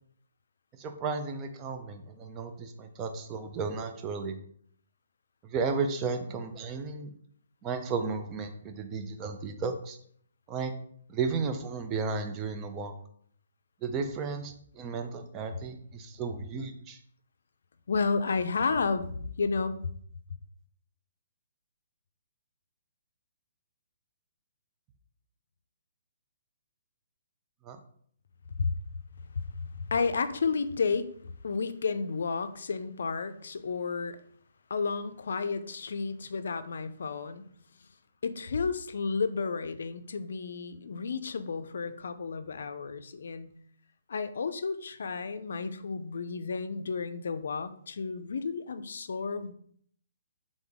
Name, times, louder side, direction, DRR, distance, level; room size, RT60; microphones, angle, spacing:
voice 1, 0.8-4.4 5.4-7.1 7.6-10.0 10.5-10.7 11.1-12.9 13.8-17.0 27.6-27.8, right 4 dB, 20° right, 6 dB, 0.5 m, -34 dB
voice 2, 17.9-19.8 28.6-28.7 29.4-29.5 29.7-31.1 31.4-34.2 34.7-37.5 38.2-43.5 44.1-49.5, left 4 dB, 75° left, 11 dB, 0.4 m, -32 dB
3.9 x 3.6 x 3.5 m, 0.62 s
hypercardioid pair, 150°, 0 cm